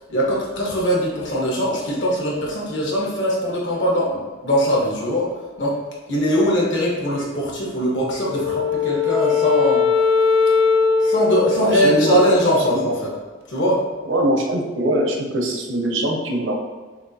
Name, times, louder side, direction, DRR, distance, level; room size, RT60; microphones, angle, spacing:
voice 1, 0.1-5.3 5.6-5.8 6.1-9.9 11.0-13.1 13.5-13.8, equal, 65° left, -4 dB, 1.2 m, -21 dB
Wind instrument woodwind instrument, 8.3-12.7, left 5 dB, 85° left, 0.7 m, -20 dB
voice 2, 11.7-12.2 12.7-12.8 14.1-16.6, right 1 dB, 70° right, 1 dB, 0.7 m, -22 dB
6.8 x 2.5 x 2.8 m, 1.4 s
head